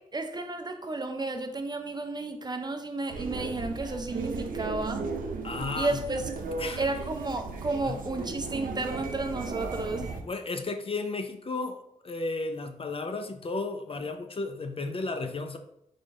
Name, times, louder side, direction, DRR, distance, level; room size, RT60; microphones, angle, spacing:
voice 1, 0.0-5.1 5.8-6.2 6.8-10.1, right 2 dB, 30° right, 6 dB, 0.6 m, -32 dB
sound 1, 3.1-10.2, right 4 dB, 85° right, 0.5 m, -36 dB
voice 2, 5.4-6.0 6.6-6.8 7.8-8.0 10.2-15.6, left 3 dB, 40° left, 6 dB, 0.6 m, -33 dB
3.7 x 3.4 x 3.7 m, 0.74 s
cardioid pair, 55°, 14 cm